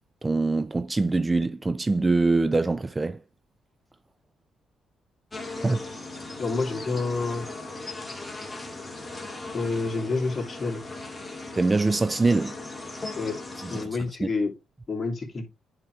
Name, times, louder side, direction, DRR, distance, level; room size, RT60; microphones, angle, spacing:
voice 1, 0.2-3.2 5.6-5.8 11.6-12.6 13.6-13.8 14.2-14.3, right 3 dB, 20° right, 0.4 m, -23 dB
sound 1, 5.3-13.9, left 2 dB, 15° left, 2.1 m, -38 dB
voice 2, 6.4-7.5 9.5-10.8 13.1-13.4 13.7-14.5 14.9-15.4, left 3 dB, 35° left, 2.6 m, -28 dB
9.5 x 4.6 x 3.2 m
cardioid pair, 90°, 0 cm